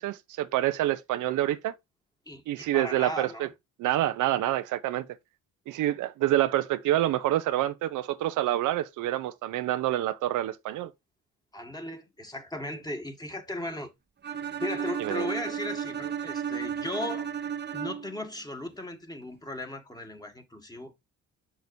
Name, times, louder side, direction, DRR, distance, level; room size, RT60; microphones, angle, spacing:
voice 1, 0.0-1.7 2.5-3.5 3.8-5.1 5.7-10.9 15.0-15.3, right 14 dB, 85° right, 0.7 m, -27 dB
voice 2, 2.3-3.5 11.5-13.9 14.6-17.3 17.7-20.9, left 1 dB, 15° left, 1.9 m, -36 dB
Bowed string instrument, 14.2-18.2, right 8 dB, 35° right, 0.8 m, -34 dB
6.7 x 6.3 x 2.6 m
cardioid pair, 90°, 30 cm